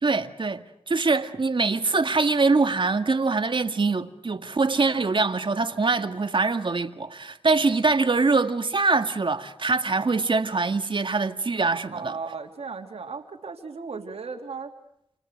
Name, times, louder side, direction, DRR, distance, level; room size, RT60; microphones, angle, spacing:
voice 1, 0.0-12.2, right 3 dB, 55° right, 2.0 m, -23 dB
voice 2, 11.9-14.7, right 4 dB, 80° right, 3.4 m, -36 dB
29.5 x 29.0 x 6.6 m
wide cardioid pair, 65°, 10 cm